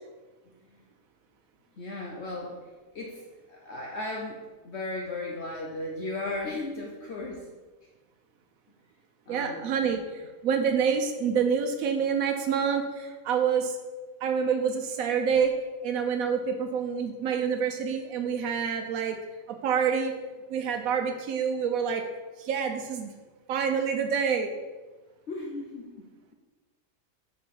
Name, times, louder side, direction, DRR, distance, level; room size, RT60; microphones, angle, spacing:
voice 1, 1.8-2.6 2.9-7.5 9.3-9.7 25.3-26.3, left 2 dB, 55° left, -1 dB, 1.1 m, -36 dB
voice 2, 9.3-13.8 14.2-15.5 15.8-19.2 19.5-20.1 20.5-22.0 22.4-23.1 23.5-24.6, right 6 dB, 90° right, 4 dB, 1.1 m, -27 dB
5.4 x 5.2 x 5.8 m, 1.3 s
omnidirectional pair, 1.4 m